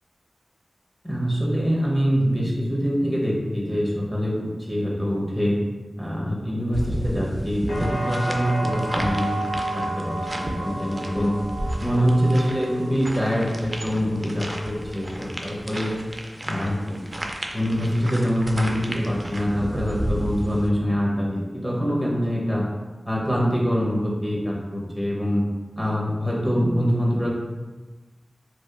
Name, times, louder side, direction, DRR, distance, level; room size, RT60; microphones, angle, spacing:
voice 1, 1.0-5.6 6.0-9.4 9.7-11.4 11.8-16.0 16.4-17.0 17.5-22.6 23.0-25.5 25.8-27.3, equal, 10° left, -4 dB, 0.7 m, -24 dB
sound 1, 6.7-20.7, right 1 dB, 30° right, 0.3 m, -33 dB
sound 2, 7.7-15.6 16.0-16.6, right 1 dB, 75° left, 0.8 m, -33 dB
2.7 x 2.4 x 2.3 m, 1.2 s
wide cardioid pair, 50°, 0 cm